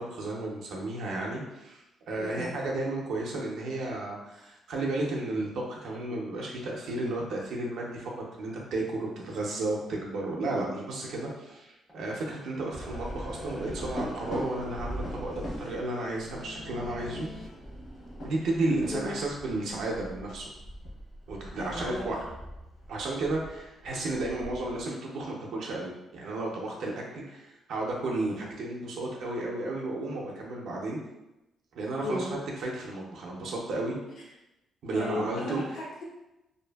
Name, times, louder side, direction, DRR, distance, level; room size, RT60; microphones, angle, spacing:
voice 1, 0.0-8.1 8.4-17.3 18.2-20.5 21.3-22.2 22.9-31.0 31.7-34.0 34.8-35.6, right 2 dB, 75° right, -2 dB, 0.4 m, -33 dB
voice 2, 2.1-2.5 18.9-19.2 21.6-22.0 32.0-32.4 34.9-36.1, left 2 dB, 80° left, -5 dB, 0.7 m, -35 dB
sound 1, 11.1-11.2 11.5-11.6 11.9-12.0 12.3-12.4 12.7-14.0 14.3-17.5, left 1 dB, 5° left, 0.4 m, -48 dB
sound 2, 12.7-24.8, equal, 55° left, 0.9 m, -41 dB
2.5 x 2.5 x 2.2 m, 0.95 s
cardioid pair, 145°, 0 cm